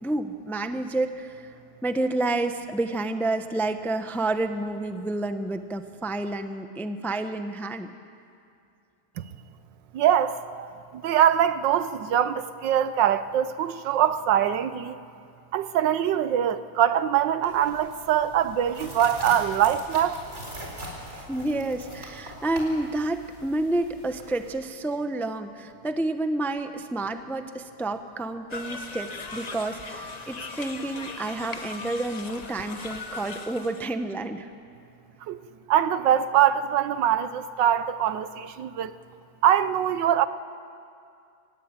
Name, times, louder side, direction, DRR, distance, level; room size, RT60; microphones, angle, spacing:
voice 1, 0.0-1.5 1.8-7.9 21.1-34.5, right 2 dB, ahead, 8 dB, 0.5 m, -29 dB
voice 2, 9.9-10.7 10.9-15.0 15.5-20.2 35.3-35.4 35.7-38.9 39.4-40.3, right 10 dB, 90° right, 13 dB, 1.5 m, -23 dB
sound 1, 17.4-24.5, equal, 40° right, 4.9 m, -42 dB
sound 2, 28.5-33.9, left 3 dB, 30° left, 0.8 m, -38 dB
24.0 x 20.0 x 9.0 m, 2.5 s
omnidirectional pair, 1.9 m